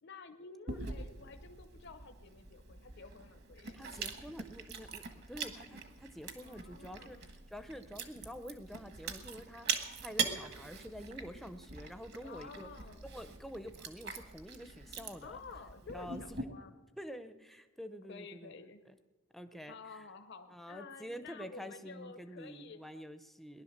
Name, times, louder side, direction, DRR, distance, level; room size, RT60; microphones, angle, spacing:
voice 1, 0.0-3.8 6.4-7.3 12.2-13.0 15.2-16.7 18.1-18.8 19.7-23.0, left 4 dB, 55° left, 7 dB, 0.8 m, -51 dB
Chewing mastication, 0.7-16.4, right 5 dB, 50° right, 1.3 m, -43 dB
voice 2, 3.7-7.2 7.5-12.7 13.0-15.4 15.9-16.4 17.0-19.0 19.3-20.0 20.5-23.6, equal, ahead, 9 dB, 0.6 m, -48 dB
19.0 x 11.0 x 6.6 m, 1.3 s
head